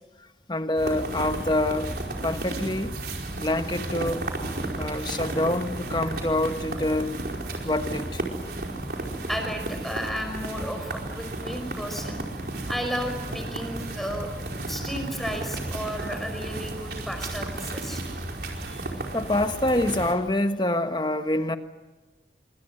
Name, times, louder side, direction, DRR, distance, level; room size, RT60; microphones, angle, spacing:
voice 1, 0.5-1.9 2.2-3.0 3.4-4.3 4.8-7.1 7.6-8.2 19.1-21.6, left 1 dB, 25° left, 8 dB, 1.3 m, -26 dB
sound 1, 0.8-20.1, right 2 dB, 60° right, 4.7 m, -33 dB
voice 2, 9.3-12.2 12.7-14.3 14.7-18.0 18.7-18.9, equal, ahead, 4 dB, 5.2 m, -33 dB
26.5 x 24.5 x 7.8 m, 1.2 s
head